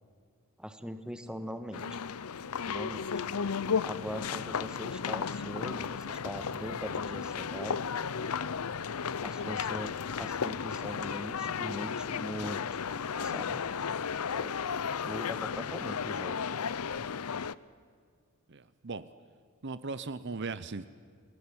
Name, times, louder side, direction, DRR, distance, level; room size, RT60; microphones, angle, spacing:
voice 1, 0.6-2.0 2.6-3.3 3.8-7.9 9.2-12.6 13.2-13.6 14.3-14.5 15.0-16.4, equal, 5° right, 9 dB, 1.4 m, -41 dB
sound 1, 1.7-17.5, left 6 dB, 90° left, 0.7 m, -34 dB
voice 2, 13.2-13.5 18.5-19.1 19.6-20.9, right 3 dB, 55° right, 14 dB, 0.8 m, -38 dB
29.0 x 19.5 x 8.8 m, 2.1 s
head